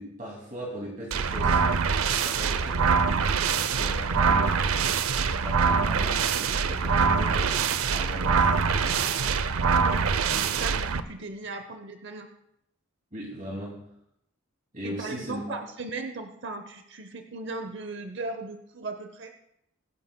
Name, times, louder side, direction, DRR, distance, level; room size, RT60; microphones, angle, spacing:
voice 1, 0.0-3.3 3.6-4.6 5.1-9.0 13.1-13.8 14.7-15.6, equal, 35° right, -4 dB, 2.5 m, -39 dB
sound 1, 1.1-11.0, right 5 dB, 85° right, 0.6 m, -24 dB
voice 2, 9.8-12.3 14.8-19.3, right 3 dB, 55° right, 7 dB, 0.8 m, -37 dB
22.0 x 11.0 x 2.3 m, 0.77 s
head